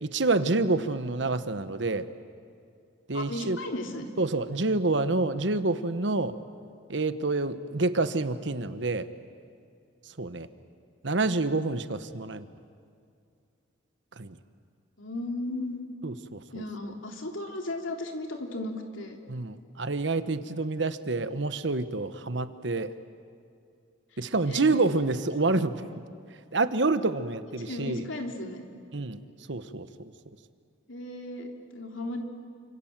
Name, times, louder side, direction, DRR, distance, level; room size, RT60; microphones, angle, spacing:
voice 1, 0.0-2.1 3.1-3.6 4.2-6.4 6.9-9.1 10.2-10.5 11.0-12.5 14.2-14.4 16.0-16.6 19.3-22.9 24.2-25.8 26.5-28.0 28.9-29.2 29.5-30.1, right 3 dB, 65° right, 11 dB, 1.2 m, -28 dB
voice 2, 3.1-4.1 15.0-15.8 16.5-19.2 24.5-24.8 27.6-28.6 30.9-32.2, left 1 dB, 90° left, 3 dB, 3.2 m, -35 dB
29.0 x 26.5 x 7.5 m, 2.4 s
head